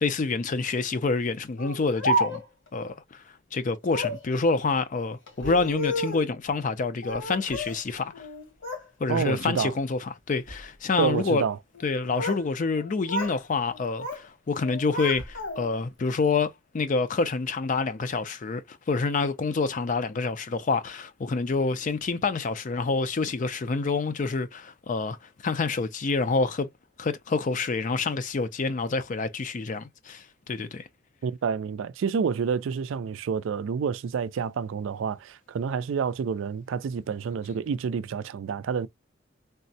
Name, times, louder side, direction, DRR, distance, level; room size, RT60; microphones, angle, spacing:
voice 1, 0.0-2.4 2.7-3.2 3.5-8.3 9.0-11.4 11.8-26.7 27.0-30.9, left 4 dB, 40° left, 0.4 m, -27 dB
Speech, 1.6-2.7 3.8-4.3 5.3-6.3 7.0-7.8 8.1-8.9 9.2-9.6 10.3-10.6 11.7-12.5 12.7-13.4 13.7-14.3 14.6-15.8, equal, 70° left, 1.5 m, -32 dB
voice 2, 9.1-9.7 11.0-11.6 31.2-38.9, right 6 dB, 75° right, 0.3 m, -28 dB
3.4 x 2.0 x 2.6 m
head